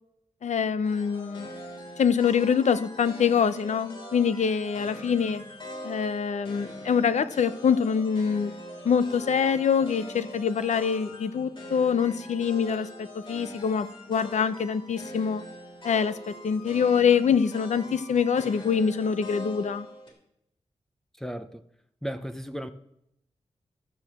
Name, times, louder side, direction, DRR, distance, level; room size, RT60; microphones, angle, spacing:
voice 1, 0.4-1.5 2.0-5.4 5.8-8.5 8.8-15.4 15.8-19.9, left 7 dB, 80° left, 0.6 m, -25 dB
sound 1, 0.8-20.1, equal, 45° left, 3.1 m, -43 dB
voice 2, 21.2-21.6 22.0-22.7, equal, 5° left, 0.6 m, -35 dB
13.5 x 6.7 x 7.4 m
wide cardioid pair, 160°, 12 cm